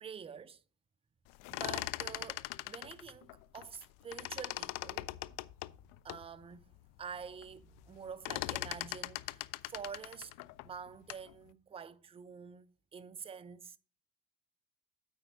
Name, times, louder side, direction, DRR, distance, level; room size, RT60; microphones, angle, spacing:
voice 1, 0.0-0.6 1.5-5.1 6.0-6.6 7.0-10.3 10.6-12.7 12.9-13.8, right 7 dB, 15° right, 0.4 m, -47 dB
sound 1, 1.3-3.8 4.1-6.2 6.8-6.9 7.1-7.5 7.8-11.3, left 20 dB, 45° left, 0.4 m, -40 dB
8.9 x 4.5 x 5.2 m
figure-of-eight pair, 55°, 48 cm